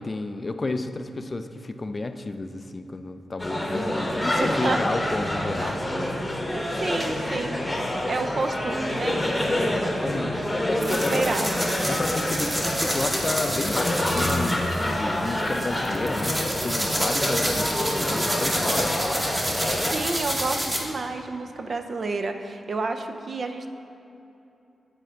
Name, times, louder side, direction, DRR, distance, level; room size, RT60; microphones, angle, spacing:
voice 1, 0.0-5.8 9.6-11.3 11.9-18.9, left 2 dB, 35° left, 8 dB, 0.3 m, -31 dB
sound 1, 3.4-19.9, left 1 dB, 15° left, 0.9 m, -27 dB
voice 2, 4.4-4.8 5.6-5.8 6.8-7.6 8.1-9.2 10.8-11.6 19.8-23.7, right 3 dB, 50° right, 6 dB, 0.4 m, -30 dB
sound 2, 10.8-20.8, equal, 15° right, 0.9 m, -29 dB
9.1 x 3.5 x 4.6 m, 2.9 s
cardioid pair, 75°, 0 cm